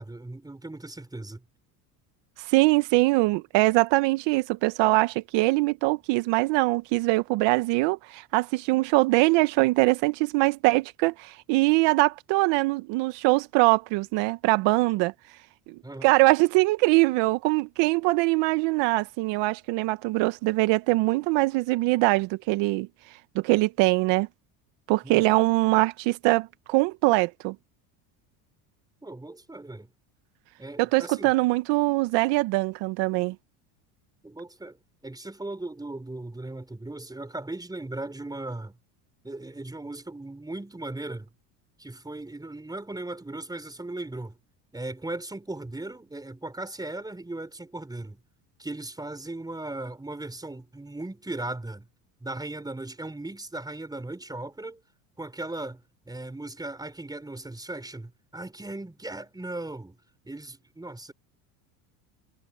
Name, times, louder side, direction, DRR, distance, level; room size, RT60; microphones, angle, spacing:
voice 1, 0.0-1.4 15.8-16.2 25.0-25.4 29.0-29.9 30.6-31.3 34.2-34.8 35.0-38.8 39.2-41.3 41.8-44.4 44.7-48.2 48.6-51.9 52.2-54.8 55.2-60.0 60.2-61.1, right 2 dB, 10° right, 4.4 m, -37 dB
voice 2, 2.4-15.1 16.0-22.9 23.3-24.3 24.9-27.5 30.8-33.3, right 22 dB, 65° right, 1.2 m, -23 dB
supercardioid pair, 95°, 46 cm